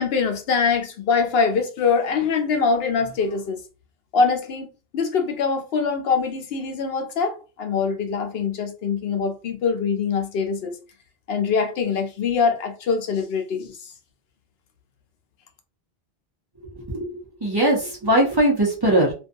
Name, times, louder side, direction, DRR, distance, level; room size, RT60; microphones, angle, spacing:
voice 1, 0.0-3.6 4.1-4.7 4.9-10.8 11.3-13.7, left 5 dB, 75° left, 0.8 m, -23 dB
voice 2, 16.8-19.1, right 1 dB, 25° right, 0.7 m, -20 dB
2.5 x 2.3 x 2.6 m
omnidirectional pair, 1.0 m